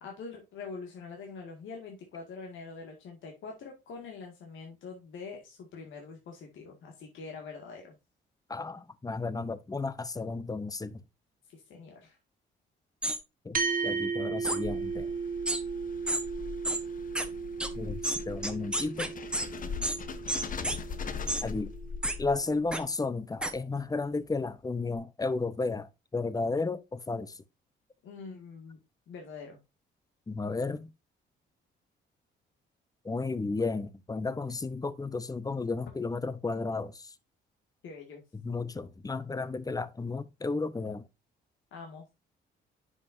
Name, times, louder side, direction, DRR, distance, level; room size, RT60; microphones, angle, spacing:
voice 1, 0.0-8.0 11.5-12.2 19.5-19.9 22.7-22.8 28.0-28.8 29.1-29.6 37.8-38.2 41.7-42.0, left 4 dB, 75° left, 2.1 m, -44 dB
voice 2, 8.5-11.0 13.4-15.1 17.7-19.1 21.4-21.7 22.2-27.3 30.3-30.9 33.0-37.1 38.4-41.0, left 3 dB, 20° left, 0.8 m, -33 dB
sound 1, 13.0-13.2 14.4-14.6 15.5-15.6 16.1-16.2 16.6-16.8 17.2-17.3 17.6-17.7 18.0-19.5 19.8-20.0 20.3-20.8 21.3-21.4 22.0-22.2 22.7-22.8 23.4-23.5, right 1 dB, 5° right, 1.2 m, -30 dB
sound 2, 13.5-22.2, right 5 dB, 45° right, 1.9 m, -36 dB
sound 3, 14.3-22.6, left 6 dB, 45° left, 1.0 m, -41 dB
9.8 x 5.5 x 2.7 m
cardioid pair, 90°, 20 cm